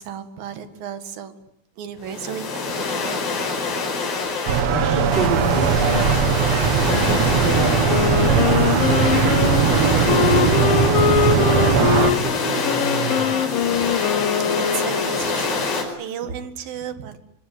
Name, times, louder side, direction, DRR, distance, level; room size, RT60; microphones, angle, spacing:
voice 1, 0.0-1.3 1.8-3.3 6.5-7.0 13.7-13.9 14.6-17.2, right 8 dB, 55° right, 10 dB, 3.1 m, -35 dB
sound 1, 2.0-15.8, left 4 dB, 60° left, 6.7 m, -26 dB
sound 2, 4.5-12.1, right 7 dB, 70° right, 1.6 m, -19 dB
voice 2, 4.7-6.2 6.5-9.2 9.5-13.3, right 2 dB, 25° right, 4 dB, 3.8 m, -28 dB
Wind instrument woodwind instrument, 7.9-15.6, left 9 dB, 80° left, 4.2 m, -23 dB
25.5 x 24.0 x 9.4 m, 0.75 s
omnidirectional pair, 5.6 m